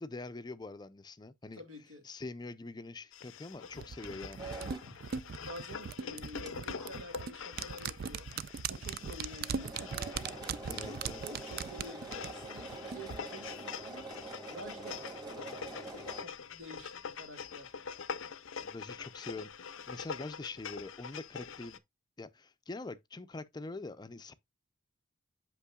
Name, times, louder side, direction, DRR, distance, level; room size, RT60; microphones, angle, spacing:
voice 1, 0.0-1.6 2.0-4.5 10.6-11.2 18.6-21.8 22.2-24.3, left 3 dB, 20° left, 0.4 m, -44 dB
voice 2, 1.5-2.0 4.8-4.9 5.4-8.3 8.7-14.1 14.5-17.7, equal, 85° right, 1.9 m, -49 dB
sound 1, 3.1-21.8, left 6 dB, 80° left, 0.6 m, -45 dB
sound 2, 3.8-13.2 13.5-13.6, right 6 dB, 50° right, 0.3 m, -40 dB
sound 3, 4.4-4.9 5.6-5.7 6.1-6.2 6.5-6.6 6.7-6.9 7.6-7.7 7.9-8.0 8.3-8.4 8.7-16.2, right 3 dB, 20° right, 1.5 m, -46 dB
8.3 x 5.9 x 2.3 m
head